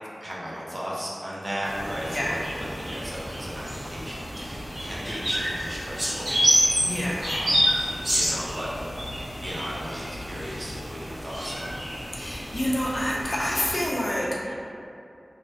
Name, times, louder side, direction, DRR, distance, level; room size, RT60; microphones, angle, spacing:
voice 1, 0.2-2.5 2.7-6.4 6.7-7.8 8.1-9.1 9.4-11.8, equal, 40° right, -6 dB, 0.5 m, -36 dB
sound 1, 1.6-13.9, equal, 80° right, 1.0 m, -29 dB
voice 2, 6.8-7.3 12.1-14.6, equal, 45° left, -5 dB, 0.4 m, -28 dB
2.4 x 2.2 x 2.4 m, 2.5 s
wide cardioid pair, 60°, 0 cm